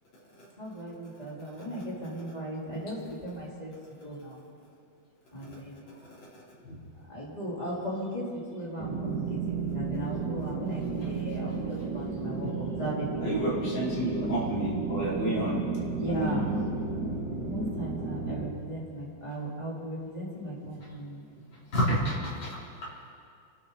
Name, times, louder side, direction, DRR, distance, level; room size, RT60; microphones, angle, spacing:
voice 1, 0.6-3.7 4.0-4.4 5.3-5.8 7.1-13.1 13.3-13.5 16.0-16.5 17.4-21.4, right 1 dB, 20° left, -6 dB, 4.1 m, -37 dB
sound 1, 8.8-18.5, right 4 dB, 55° right, 2.9 m, -33 dB
voice 2, 13.2-15.6 16.0-16.6 21.7-22.5, equal, 80° left, -9 dB, 4.5 m, -29 dB
27.5 x 13.0 x 4.1 m, 2.3 s
omnidirectional pair, 2.1 m